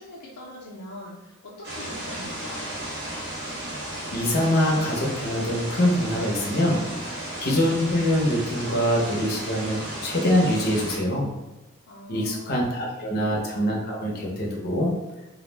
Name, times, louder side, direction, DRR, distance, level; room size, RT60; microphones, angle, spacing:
voice 1, 0.0-2.6 11.9-12.5 13.0-13.3, left 1 dB, 90° left, -7 dB, 0.5 m, -42 dB
sound 1, 1.6-11.0, right 1 dB, 55° right, 0.8 m, -34 dB
voice 2, 4.1-7.0 7.4-11.3 12.1-15.0, left 1 dB, 45° left, -2 dB, 0.6 m, -24 dB
2.3 x 2.0 x 3.2 m, 1.1 s
head